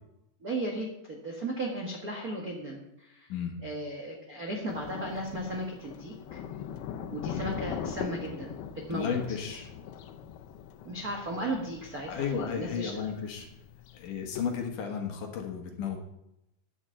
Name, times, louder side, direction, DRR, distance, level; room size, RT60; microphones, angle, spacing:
voice 1, 0.4-3.3 3.6-6.4 7.1-8.5 8.9-9.1 10.8-13.1, right 1 dB, 60° right, -1 dB, 0.9 m, -36 dB
Thunder, 4.7-14.7, left 8 dB, 85° left, 2.7 m, -41 dB
voice 2, 8.9-9.7 12.1-13.5 13.9-16.0, left 7 dB, 65° left, 3 dB, 2.6 m, -33 dB
9.7 x 7.2 x 7.5 m, 0.86 s
omnidirectional pair, 4.4 m